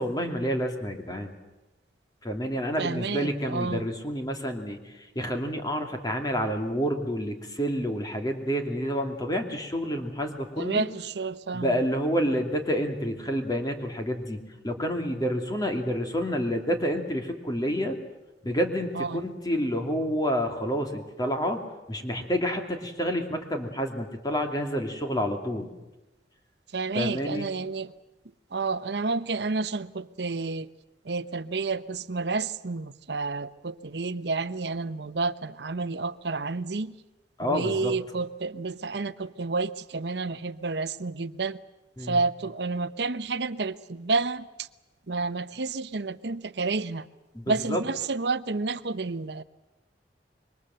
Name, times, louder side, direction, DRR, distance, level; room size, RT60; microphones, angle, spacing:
voice 1, 0.0-1.3 2.2-10.9 11.5-18.0 18.4-21.6 21.9-25.7 26.9-27.5 37.4-37.9 42.0-42.2 47.3-47.8, equal, 20° left, 2.7 m, -29 dB
voice 2, 2.8-3.9 10.6-11.8 18.9-19.3 26.7-27.9 28.5-30.7 31.0-36.9 37.4-41.6 42.0-44.7 45.1-47.1 47.5-49.4, right 3 dB, 70° right, 0.9 m, -30 dB
26.5 x 23.0 x 7.8 m
head